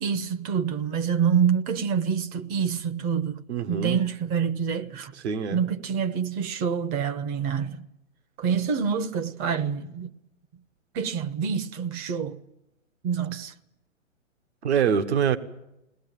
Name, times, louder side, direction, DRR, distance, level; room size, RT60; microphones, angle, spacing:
voice 1, 0.0-3.4 3.7-5.1 5.5-7.8 8.4-10.1 10.9-12.4 13.0-13.5, right 7 dB, 25° right, 1.1 m, -26 dB
voice 2, 3.5-4.0 5.1-5.6 14.6-15.4, right 7 dB, 55° right, 1.7 m, -24 dB
21.5 x 18.5 x 9.0 m
figure-of-eight pair, 125°, 40 cm